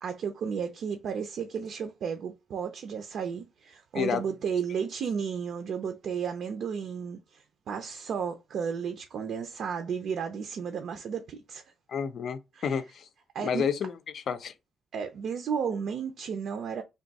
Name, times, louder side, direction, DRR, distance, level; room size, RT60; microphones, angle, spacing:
voice 1, 0.0-11.6 12.6-12.8 13.3-13.7 14.9-16.8, right 6 dB, 60° right, 0.5 m, -33 dB
voice 2, 11.9-13.1 13.4-14.5, left 7 dB, 50° left, 0.5 m, -30 dB
3.4 x 2.6 x 4.0 m
wide cardioid pair, 180°, 0 cm